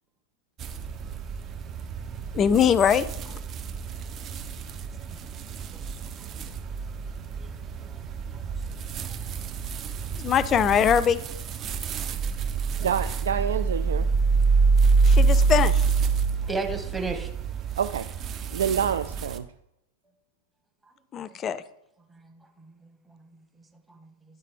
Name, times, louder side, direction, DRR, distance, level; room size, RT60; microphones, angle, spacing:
sound 1, 0.6-19.4, right 4 dB, 30° right, 0.7 m, -27 dB
voice 1, 2.3-3.4 10.2-11.2 15.1-15.8 21.1-21.6, left 8 dB, 25° left, 15 dB, 0.4 m, -22 dB
voice 2, 12.8-14.1 17.8-18.1 18.5-19.5, right 8 dB, 65° right, 10 dB, 0.3 m, -27 dB
voice 3, 16.4-17.3 22.1-24.4, right 3 dB, 10° right, 3 dB, 1.2 m, -37 dB
11.0 x 5.5 x 3.7 m, 0.82 s
figure-of-eight pair, 90°, 0 cm